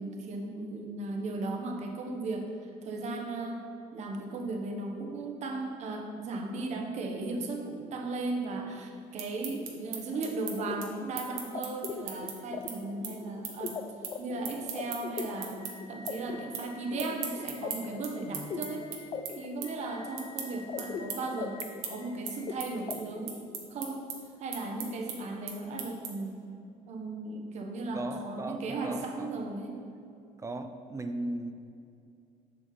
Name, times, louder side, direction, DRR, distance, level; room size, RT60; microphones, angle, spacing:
voice 1, 0.0-2.5 2.8-3.6 3.9-13.8 14.2-18.9 19.4-21.6 21.8-23.4 23.7-24.1 24.4-26.4 26.8-29.8, right 2 dB, 50° right, 2 dB, 1.1 m, -36 dB
sound 1, 9.0-15.7 16.1-16.7 17.0-26.4, right 8 dB, 85° right, 1.2 m, -39 dB
sound 2, 10.1-22.9, left 6 dB, 35° left, 0.4 m, -41 dB
voice 2, 27.9-29.3 30.4-31.5, right 2 dB, 20° right, 7 dB, 0.4 m, -37 dB
7.5 x 6.3 x 4.0 m, 2.5 s
cardioid pair, 125°, 15 cm